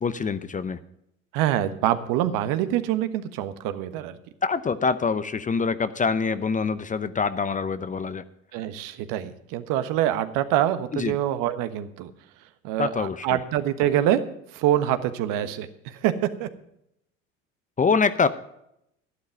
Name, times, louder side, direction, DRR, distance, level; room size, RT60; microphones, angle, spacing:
voice 1, 0.0-0.8 4.4-8.2 10.9-11.2 12.8-13.4 17.8-18.3, left 5 dB, 20° left, 14 dB, 0.7 m, -25 dB
voice 2, 1.3-4.2 8.5-12.1 12.6-14.2 14.5-16.1 16.4-16.5, right 12 dB, 55° right, 11 dB, 1.3 m, -25 dB
12.0 x 11.5 x 5.1 m, 0.77 s
hypercardioid pair, 70°, 38 cm